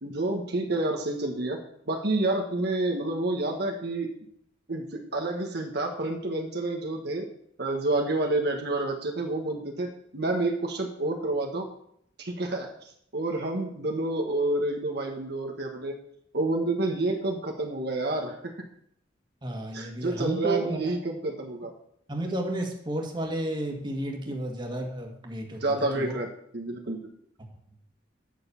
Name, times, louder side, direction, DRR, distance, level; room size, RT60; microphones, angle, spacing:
voice 1, 0.0-1.6 1.9-4.1 4.7-7.3 7.6-11.7 12.2-12.7 13.1-16.0 16.3-18.5 19.7-21.7 25.6-26.3 26.5-27.0, right 2 dB, 65° right, 2 dB, 1.4 m, -29 dB
voice 2, 19.4-20.9 22.1-25.6 25.9-26.2, right 1 dB, 25° right, 1 dB, 1.8 m, -32 dB
9.7 x 6.5 x 7.0 m, 0.69 s
head